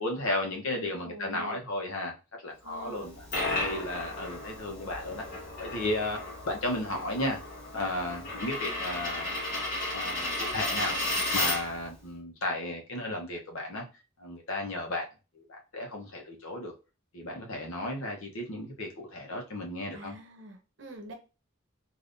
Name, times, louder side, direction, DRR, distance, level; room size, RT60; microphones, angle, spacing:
voice 1, 0.0-2.2 2.4-3.1 3.6-5.2 5.6-6.2 6.5-7.4 7.7-9.3 9.9-11.0 11.3-13.8 14.2-15.1 15.3-16.7 17.1-20.1, left 1 dB, 85° left, 1 dB, 0.9 m, -34 dB
voice 2, 0.7-1.7 2.6-3.2 19.9-21.1, right 1 dB, 60° right, 4 dB, 0.8 m, -45 dB
Coin (dropping), 3.0-11.8, left 2 dB, 40° left, 1.5 m, -33 dB
3.5 x 2.6 x 2.6 m, 0.31 s
head